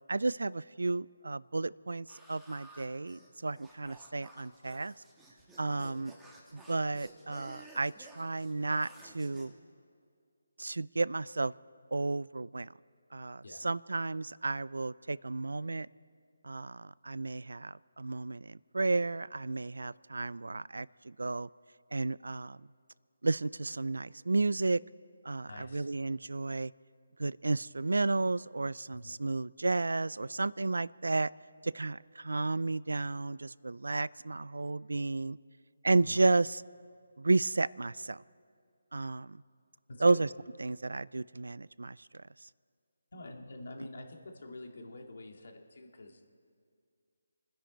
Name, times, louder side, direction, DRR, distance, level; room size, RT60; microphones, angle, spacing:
voice 1, 0.1-4.9 5.6-6.1 6.5-9.5 10.6-11.5 11.9-12.7 13.1-15.9 16.4-21.5 21.9-22.6 23.2-24.8 25.2-26.7 27.2-31.3 31.6-35.4 35.8-36.6 37.2-38.2 38.9-39.4 40.0-40.3 40.6-42.2, right 3 dB, 85° right, 22 dB, 0.3 m, -32 dB
sound 1, 2.1-9.5, right 1 dB, 5° right, 1.3 m, -55 dB
voice 2, 5.7-6.0 13.4-13.7 25.5-25.9 28.9-29.1 36.0-36.2 39.9-40.2 43.1-46.2, left 2 dB, 65° left, 3 dB, 2.1 m, -47 dB
28.5 x 10.5 x 4.4 m, 2.2 s
figure-of-eight pair, 165°, 0 cm